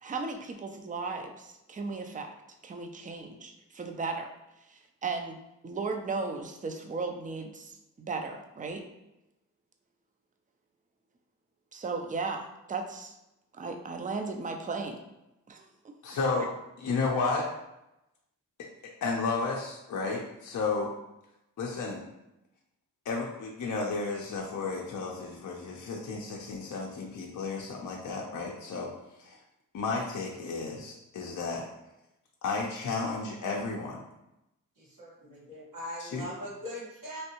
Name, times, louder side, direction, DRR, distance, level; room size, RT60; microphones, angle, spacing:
voice 1, 0.0-2.3 2.6-4.3 4.7-5.4 5.6-8.8 11.7-13.1 13.5-15.0 15.5-15.9, right 4 dB, 25° right, 4 dB, 0.4 m, -36 dB
voice 2, 16.0-16.5 16.8-17.5 19.0-20.9 21.6-22.0 23.1-28.9 29.2-29.4 29.7-31.6 32.4-34.0 36.0-36.3, left 4 dB, 65° left, -1 dB, 0.5 m, -32 dB
voice 3, 34.8-37.2, left 1 dB, 80° right, -6 dB, 1.4 m, -41 dB
3.2 x 2.6 x 2.9 m, 0.91 s
cardioid pair, 65°, 32 cm